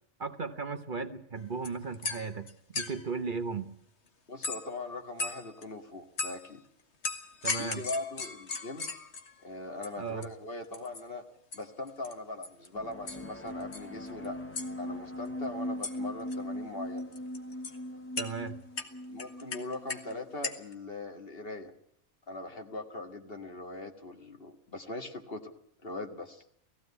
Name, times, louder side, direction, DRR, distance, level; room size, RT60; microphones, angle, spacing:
voice 1, 0.2-3.7 7.4-7.8 10.0-10.3 18.2-18.6, right 5 dB, 45° right, 8 dB, 1.2 m, -36 dB
sound 1, 1.4-1.5 1.6-3.1 4.4-4.8 5.2-5.6 6.2-6.5 7.0-9.4 9.8-9.9 10.2-10.3 10.6-11.0 11.5-11.6 11.9-12.1 12.4-12.7 13.1-13.3 13.6-14.3 14.5-14.7 15.8-15.9 16.2-16.4 17.0-17.8 18.2-18.3 18.8-20.1 20.4-20.7, left 4 dB, 70° left, 1.9 m, -37 dB
voice 2, 4.3-6.6 7.6-8.9 9.4-11.2 11.5-14.4 14.8-17.1 19.1-21.7 22.3-25.5 25.8-26.4, left 2 dB, 55° left, 4 dB, 2.1 m, -40 dB
sound 2, 12.7-20.3, left 1 dB, 10° left, 0.9 m, -40 dB
18.0 x 15.5 x 9.6 m, 0.68 s
omnidirectional pair, 1.2 m